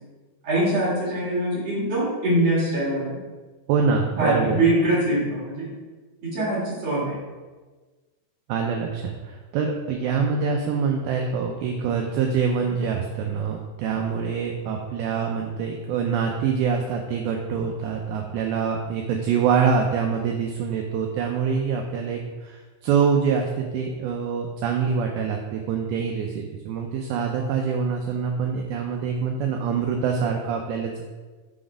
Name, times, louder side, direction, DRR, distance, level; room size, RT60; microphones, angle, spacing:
voice 1, 0.4-3.2 4.2-5.7 6.2-7.1, right 1 dB, 50° right, -8 dB, 2.2 m, -23 dB
voice 2, 3.7-4.6 8.5-31.0, right 6 dB, 90° right, 2 dB, 2.1 m, -25 dB
6.1 x 3.9 x 4.9 m, 1.3 s
omnidirectional pair, 4.9 m